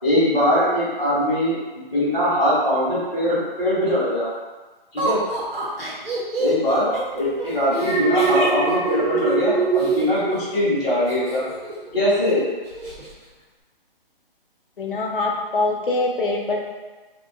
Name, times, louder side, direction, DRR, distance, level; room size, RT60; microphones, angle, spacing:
voice 1, 0.0-4.3 4.9-5.2 6.4-11.4 11.9-12.5, left 1 dB, 5° right, -21 dB, 0.5 m, -21 dB
Laughter, 5.0-10.0 11.1-11.9 12.2-12.3 12.7-13.1, right 2 dB, 75° right, 1.2 m, -29 dB
Alarm, 7.7-11.0 11.4-11.8, right 5 dB, 30° right, 0.9 m, -23 dB
voice 2, 14.8-16.6, left 2 dB, 65° left, 0 dB, 0.7 m, -23 dB
2.9 x 2.6 x 3.4 m, 1.3 s
hypercardioid pair, 165°, 29 cm